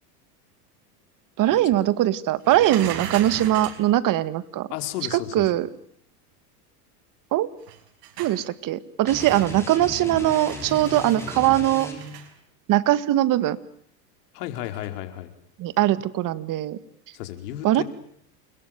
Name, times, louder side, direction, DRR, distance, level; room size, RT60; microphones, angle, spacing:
voice 1, 1.4-4.7 5.1-5.7 7.3-7.5 8.2-11.9 12.7-13.6 15.6-16.8 17.6-17.8, right 14 dB, 40° right, 15 dB, 1.9 m, -21 dB
sound 1, 2.4-3.9 7.6-8.4 9.1-9.7 10.1-12.3 14.6-14.9, right 9 dB, 80° right, 5.6 m, -38 dB
voice 2, 4.7-5.6 14.3-15.3 17.1-17.8, left 13 dB, 75° left, 8 dB, 4.9 m, -33 dB
sound 2, 9.0-12.3, left 1 dB, 5° left, 6.4 m, -36 dB
29.5 x 22.0 x 9.2 m, 0.67 s
supercardioid pair, 125°, 47 cm